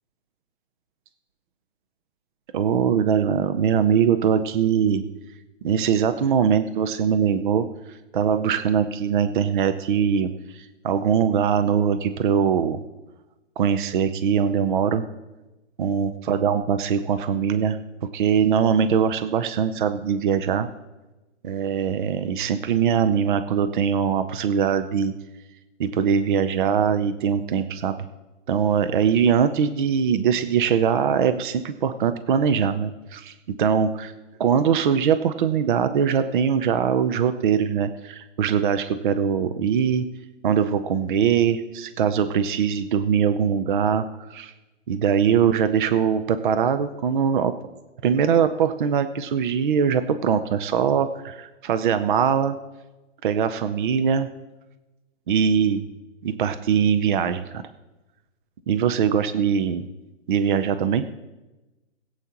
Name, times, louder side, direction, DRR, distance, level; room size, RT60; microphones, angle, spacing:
voice 1, 2.5-5.0 5.6-7.7 8.1-12.8 13.6-15.0 15.8-17.8 18.1-20.7 21.4-25.1 25.8-28.1 28.5-34.1 34.4-40.1 40.4-44.5 44.9-47.5 48.0-52.6 53.2-54.3 55.3-55.9 56.2-57.6 58.7-59.9 60.3-61.0, right 7 dB, 40° right, 10 dB, 0.6 m, -22 dB
20.5 x 8.0 x 2.9 m, 1.1 s
hypercardioid pair, 155°, 37 cm